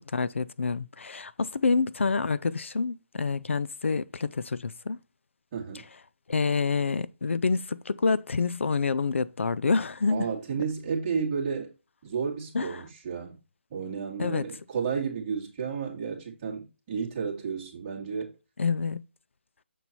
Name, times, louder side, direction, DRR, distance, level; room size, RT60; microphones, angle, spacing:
voice 1, 0.1-5.0 6.3-10.3 12.5-12.8 14.2-14.5 18.6-19.0, left 4 dB, 80° left, 0.5 m, -27 dB
voice 2, 5.5-5.8 10.1-11.7 12.0-13.3 13.7-18.3, right 6 dB, 25° right, 2.1 m, -32 dB
7.2 x 4.4 x 4.1 m
hypercardioid pair, 170°, 7 cm